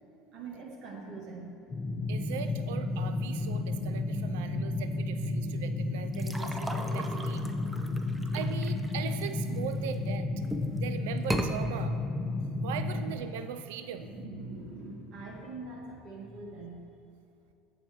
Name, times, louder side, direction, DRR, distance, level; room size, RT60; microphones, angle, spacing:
voice 1, 0.3-1.5 12.4-12.7 13.9-16.8, right 3 dB, 55° right, -1 dB, 1.6 m, -43 dB
sound 1, 1.7-13.1, left 2 dB, 35° left, 1.0 m, -32 dB
voice 2, 2.1-7.4 8.3-10.4 10.8-11.9 12.6-14.1, right 8 dB, 90° right, 9 dB, 0.3 m, -40 dB
sound 2, 6.1-9.9 10.4-10.8 11.2-11.5, right 1 dB, 10° right, 0.5 m, -37 dB
8.8 x 7.0 x 3.0 m, 2.8 s
supercardioid pair, 120°, 0 cm